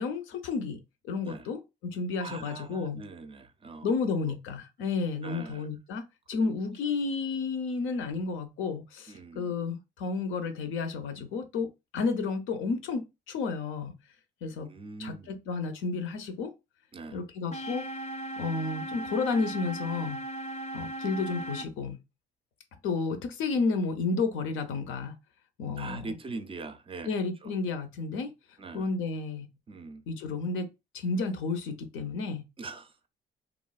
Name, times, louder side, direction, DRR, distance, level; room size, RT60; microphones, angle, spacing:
voice 1, 0.0-3.0 3.8-11.7 11.9-14.0 14.4-14.7 15.0-16.5 17.1-17.9 18.4-20.2 20.7-22.0 22.8-25.2 25.6-26.1 27.1-28.3 28.7-29.5 30.1-30.7 30.9-32.5, left 4 dB, 85° left, 0.6 m, -31 dB
voice 2, 2.2-3.9 5.2-5.7 6.3-6.5 9.1-9.5 14.6-15.4 16.9-17.2 25.8-27.1 27.4-27.5 28.6-28.9 29.7-30.0 32.6-33.1, right 3 dB, 30° right, 0.4 m, -42 dB
sound 1, 17.5-21.6, right 1 dB, 35° left, 0.5 m, -37 dB
3.0 x 2.3 x 2.3 m
cardioid pair, 90°, 20 cm